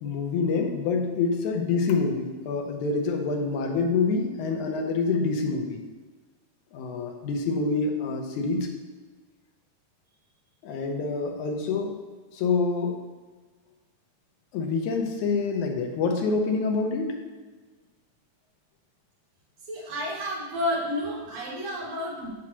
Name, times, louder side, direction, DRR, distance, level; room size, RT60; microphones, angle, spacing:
voice 1, 0.0-5.8 6.7-8.7 10.6-11.9 12.3-13.1 14.5-17.1, left 4 dB, 85° left, 3 dB, 2.3 m, -26 dB
voice 2, 19.7-22.3, left 1 dB, 70° right, -4 dB, 2.7 m, -31 dB
8.0 x 7.4 x 2.9 m, 1.3 s
omnidirectional pair, 3.3 m